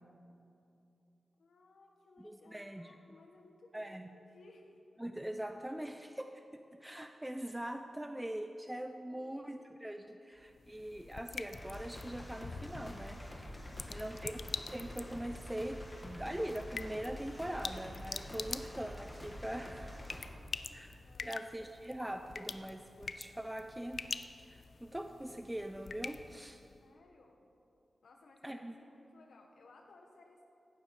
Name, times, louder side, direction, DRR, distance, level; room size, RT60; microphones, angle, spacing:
voice 1, 1.4-4.8 9.0-9.5 9.9-10.3 20.1-21.4 26.8-27.4 28.0-30.5, left 2 dB, 85° left, 2 dB, 1.4 m, -61 dB
voice 2, 2.2-3.0 3.7-4.1 5.0-13.2 13.9-14.4 14.7-20.0 20.7-24.0 24.4-26.6 28.4-28.7, right 1 dB, 10° right, 6 dB, 0.5 m, -42 dB
sound 1, 10.4-26.8, left 5 dB, 65° left, 0.5 m, -46 dB
sound 2, 11.5-20.3, equal, 20° left, 2.0 m, -47 dB
16.0 x 12.0 x 4.8 m, 2.7 s
wide cardioid pair, 105°, 0 cm